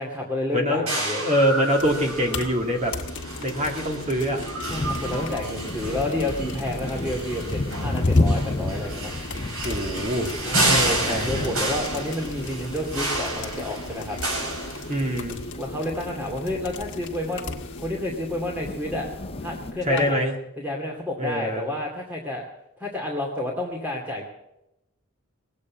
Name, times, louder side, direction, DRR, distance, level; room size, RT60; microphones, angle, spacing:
voice 1, 0.0-1.3 4.7-9.1 10.4-14.2 15.5-19.1 19.4-20.2 20.6-22.4 22.8-24.2, left 1 dB, 10° right, -1 dB, 2.4 m, -30 dB
voice 2, 0.5-0.9 1.2-3.0 3.4-4.5 9.6-10.3 10.7-11.5 14.9-15.4 19.9-20.3 21.2-21.7, equal, 30° right, 1 dB, 2.2 m, -24 dB
sound 1, 0.9-15.3, right 2 dB, 80° right, 5.9 m, -30 dB
sound 2, 1.8-20.1, left 2 dB, 55° left, 1.7 m, -37 dB
sound 3, 4.7-19.7, left 2 dB, 25° left, 0.6 m, -31 dB
20.0 x 8.5 x 8.5 m, 0.89 s
head